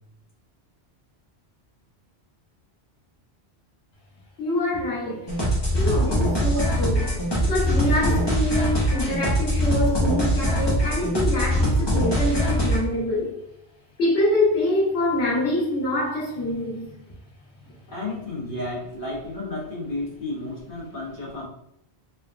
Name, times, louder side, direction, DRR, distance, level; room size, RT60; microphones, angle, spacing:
voice 1, 4.4-5.3 5.7-13.3 14.0-16.9, left 1 dB, 90° left, -4 dB, 1.3 m, -25 dB
sound 1, 5.3-12.8, equal, 25° left, 0.7 m, -22 dB
voice 2, 17.9-21.4, left 2 dB, 55° left, -4 dB, 1.0 m, -32 dB
3.4 x 2.2 x 2.4 m, 0.77 s
omnidirectional pair, 1.1 m